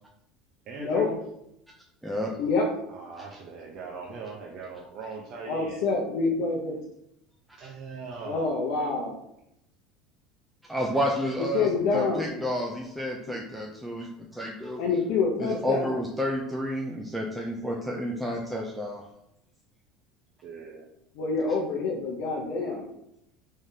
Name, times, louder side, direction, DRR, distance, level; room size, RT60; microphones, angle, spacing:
voice 1, 0.7-1.2 2.9-5.8 7.6-8.5 17.6-17.8 20.4-20.9, right 4 dB, 50° right, -2 dB, 0.6 m, -40 dB
voice 2, 5.4-6.8 8.2-9.1 11.4-12.3 14.8-16.0 21.2-22.8, left 4 dB, 70° left, -2 dB, 0.6 m, -27 dB
voice 3, 10.7-14.1 14.4-14.8 15.4-19.0, equal, 5° right, -2 dB, 0.4 m, -30 dB
3.6 x 3.2 x 2.7 m, 0.80 s
supercardioid pair, 135°, 0 cm